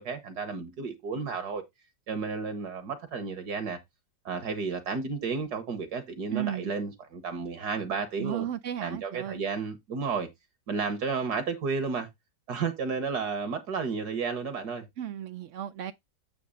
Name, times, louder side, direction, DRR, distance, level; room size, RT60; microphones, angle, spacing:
voice 1, 0.0-1.6 2.1-3.8 4.2-8.5 8.8-10.3 10.7-12.1 12.5-14.9, right 5 dB, 60° right, 1.7 m, -32 dB
voice 2, 6.3-6.7 8.2-9.4 15.0-15.9, right 11 dB, 85° right, 0.6 m, -34 dB
8.4 x 3.0 x 6.4 m
omnidirectional pair, 2.0 m